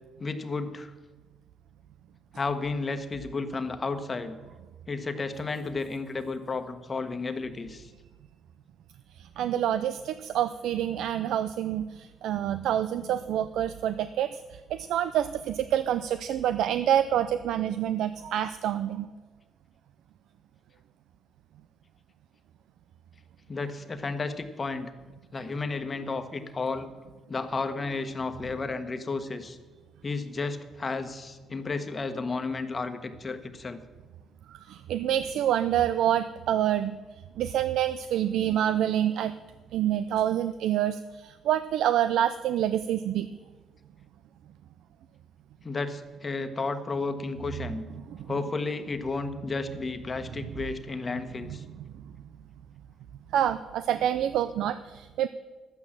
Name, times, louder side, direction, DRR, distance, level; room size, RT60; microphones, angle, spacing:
voice 1, 0.2-0.9 2.3-4.4 4.9-7.9 23.5-24.9 25.3-26.9 27.3-29.6 30.0-33.8 45.6-47.8 48.3-51.6, left 3 dB, 30° left, 8 dB, 1.2 m, -32 dB
voice 2, 9.2-14.3 14.7-19.1 34.7-37.0 37.4-39.3 39.7-43.3 53.3-55.3, right 11 dB, 80° right, 13 dB, 0.4 m, -27 dB
11.5 x 8.8 x 7.2 m, 1.3 s
cardioid pair, 90°, 0 cm